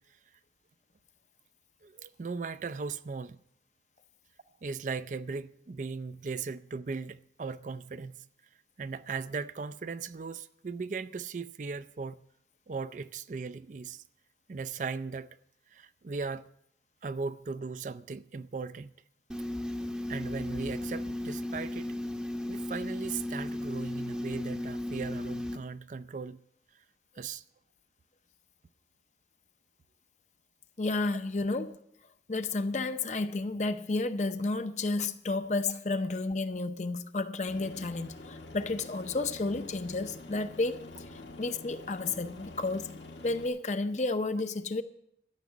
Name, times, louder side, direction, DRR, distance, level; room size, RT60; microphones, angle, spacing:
voice 1, 1.8-3.4 4.6-8.3 8.8-12.2 12.7-14.0 14.5-15.3 15.7-16.5 17.0-18.9 20.1-21.9 22.5-26.4 26.7-26.8 27.2-27.4, right 4 dB, 45° right, 0.4 m, -38 dB
sound 1, 19.3-25.6, left 1 dB, 5° right, 0.7 m, -35 dB
voice 2, 30.8-31.8 32.3-40.8 41.1-42.9 43.2-44.8, left 3 dB, 40° left, 0.7 m, -31 dB
Aircraft, 37.5-43.5, left 2 dB, 85° left, 1.9 m, -47 dB
13.0 x 6.2 x 9.3 m
head